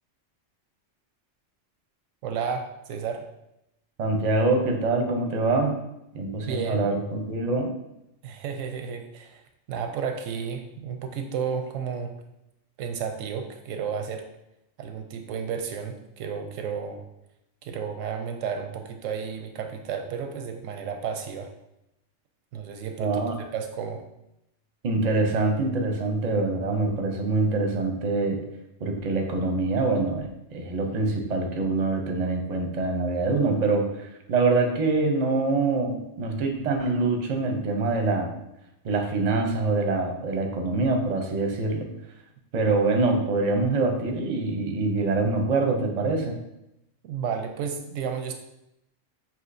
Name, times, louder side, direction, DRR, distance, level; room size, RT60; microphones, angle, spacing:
voice 1, 2.2-3.3 6.4-6.9 8.2-9.4 9.7-12.1 12.8-14.2 14.8-17.0 17.6-21.5 22.5-24.0 47.0-48.3, right 6 dB, 90° right, 6 dB, 1.0 m, -32 dB
voice 2, 4.0-5.8 6.1-7.7 23.0-23.3 24.8-28.4 28.8-38.3 38.8-41.9 42.5-46.4, right 3 dB, 45° right, 4 dB, 0.6 m, -25 dB
6.1 x 2.8 x 2.5 m, 0.85 s
omnidirectional pair, 1.3 m